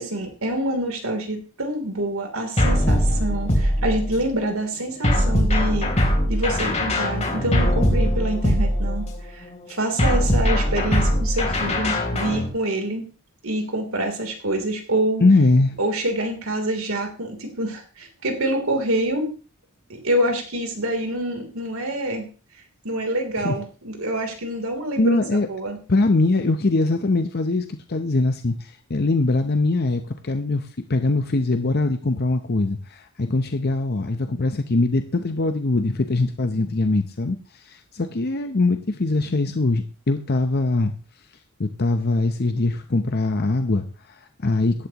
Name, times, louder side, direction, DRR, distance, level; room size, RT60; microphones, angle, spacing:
voice 1, 0.0-9.1 9.3-13.0 13.4-15.2 15.8-19.3 19.9-22.3 22.8-25.8, right 1 dB, 80° right, 3 dB, 3.3 m, -26 dB
sound 1, 2.6-4.3 5.0-9.2 10.0-12.5, equal, 30° left, 3.5 m, -21 dB
voice 2, 15.2-15.8 23.4-23.5 25.0-25.5 25.9-40.9 41.6-44.9, left 2 dB, 50° left, 7 dB, 0.8 m, -22 dB
16.5 x 11.5 x 3.0 m, 0.36 s
head